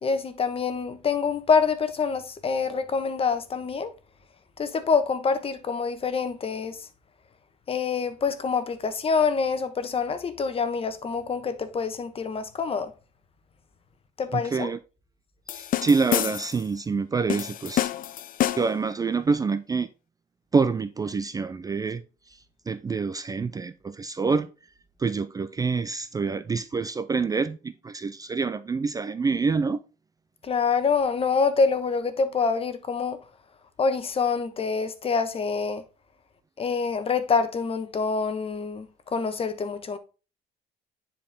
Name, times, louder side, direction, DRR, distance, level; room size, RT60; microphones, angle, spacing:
voice 1, 0.0-3.9 4.6-6.9 7.7-12.9 14.2-14.7 30.4-33.2 33.8-35.8 36.6-40.0, left 5 dB, 35° left, 1.2 m, -26 dB
voice 2, 14.3-14.8 15.5-17.9 18.6-19.9 20.5-22.0 22.7-24.5 25.0-29.8, right 4 dB, 20° right, 0.4 m, -26 dB
sound 1, 15.5-16.7 17.3-18.9, left 13 dB, 55° left, 0.5 m, -28 dB
9.9 x 4.5 x 3.5 m
cardioid pair, 110°, 17 cm